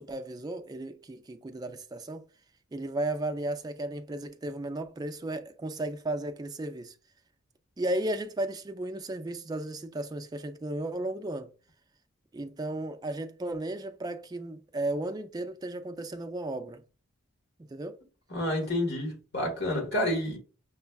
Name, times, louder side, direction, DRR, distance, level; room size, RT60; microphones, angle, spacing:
voice 1, 0.0-2.2 2.7-6.9 7.8-11.5 12.3-16.8 17.6-18.0, right 1 dB, 20° right, 0.3 m, -34 dB
voice 2, 18.3-20.4, left 1 dB, 55° left, 1.5 m, -29 dB
6.0 x 2.2 x 2.2 m
head